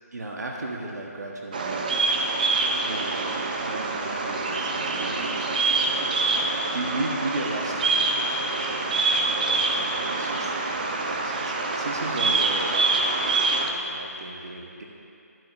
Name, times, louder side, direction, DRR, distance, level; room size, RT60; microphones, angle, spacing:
voice 1, 0.1-13.0 13.6-14.9, right 2 dB, 85° right, -1 dB, 1.1 m, -36 dB
Bird vocalization bird call bird song, 1.5-13.7, right 3 dB, 30° right, 0.6 m, -25 dB
12.0 x 11.5 x 2.5 m, 2.7 s
hypercardioid pair, 170°, 9 cm